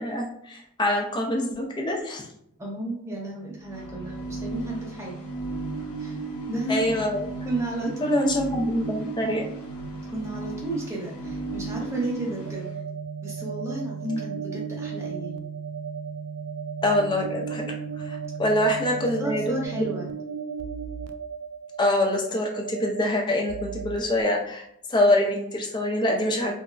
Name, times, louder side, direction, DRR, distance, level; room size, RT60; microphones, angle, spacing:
voice 1, 0.0-2.3 6.7-7.3 8.0-9.4 16.8-17.6 18.0-19.5 21.8-24.6 24.9-26.5, left 1 dB, 20° left, 0 dB, 0.4 m, -25 dB
voice 2, 2.6-5.2 6.0-6.2 6.5-6.9 7.4-8.3 10.1-12.7 13.2-15.5 18.8-20.1 26.4-26.5, right 1 dB, 15° right, -3 dB, 0.7 m, -32 dB
sound 1, 3.6-12.7, right 2 dB, 85° left, 0.9 m, -37 dB
sound 2, 5.0-24.2, right 6 dB, 90° right, 0.3 m, -36 dB
3.7 x 2.1 x 2.3 m, 0.75 s
head